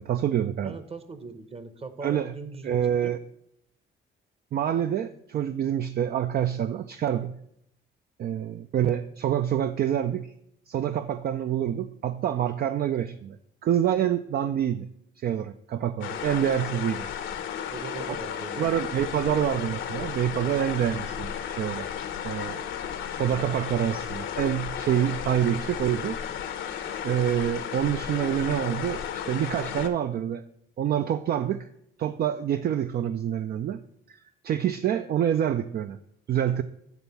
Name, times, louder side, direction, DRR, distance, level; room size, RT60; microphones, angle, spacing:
voice 1, 0.0-0.8 2.0-2.3 2.6-3.2 4.5-7.4 8.2-10.3 10.7-13.4 13.6-14.9 15.2-17.1 18.6-21.9 22.2-22.6 23.1-26.2 27.0-30.4 30.8-31.7 32.0-33.8 34.4-36.0 36.3-36.6, right 10 dB, 50° right, 10 dB, 0.4 m, -27 dB
voice 2, 0.6-3.1 17.7-18.7, right 4 dB, 30° right, 11 dB, 0.9 m, -40 dB
sound 1, 16.0-29.9, left 8 dB, 80° left, 0.8 m, -34 dB
9.2 x 3.5 x 6.8 m, 0.74 s
cardioid pair, 90°, 20 cm